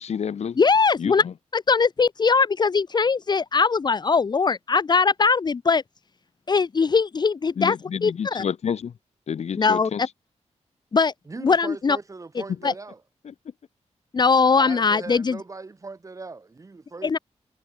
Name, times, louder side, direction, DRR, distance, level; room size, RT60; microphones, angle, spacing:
voice 1, 0.0-0.6 1.0-1.3 7.6-9.0 9.3-10.1 12.5-12.6 13.2-13.5, left 7 dB, 65° left, 1.2 m, -29 dB
voice 2, 0.6-1.2 1.5-5.8 6.5-7.7 8.0-8.4 9.6-9.9 10.9-11.1 11.4-12.0 12.6-12.7 14.1-15.4 17.0-17.2, left 5 dB, 35° left, 0.9 m, -20 dB
voice 3, 11.3-13.0 14.5-17.2, right 3 dB, 25° right, 4.0 m, -39 dB
wide cardioid pair, 170°, 12 cm